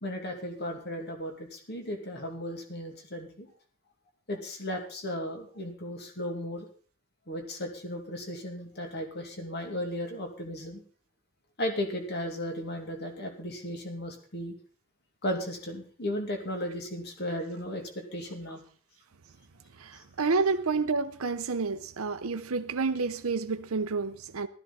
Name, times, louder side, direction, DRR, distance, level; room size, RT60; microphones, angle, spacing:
voice 1, 0.0-3.5 4.3-6.7 7.3-10.8 11.6-14.5 15.2-18.6, equal, 50° left, 2.6 m, -35 dB
voice 2, 19.8-24.5, right 4 dB, 80° right, 0.8 m, -29 dB
15.0 x 13.5 x 4.2 m
head